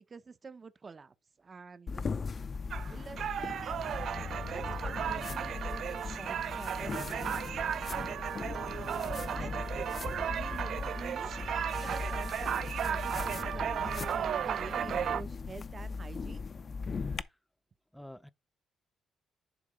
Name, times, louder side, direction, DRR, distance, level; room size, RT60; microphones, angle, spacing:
voice 1, 0.0-2.1 2.9-4.0 4.4-8.0 9.3-16.4, right 4 dB, 35° right, 0.8 m, -48 dB
sound 1, 1.9-17.2, left 4 dB, 40° left, 0.6 m, -39 dB
sound 2, 2.7-15.2, right 9 dB, 65° right, 0.4 m, -35 dB
voice 2, 16.9-17.3 17.9-18.3, left 1 dB, 5° left, 0.7 m, -50 dB
11.0 x 3.6 x 5.1 m
cardioid pair, 90°, 0 cm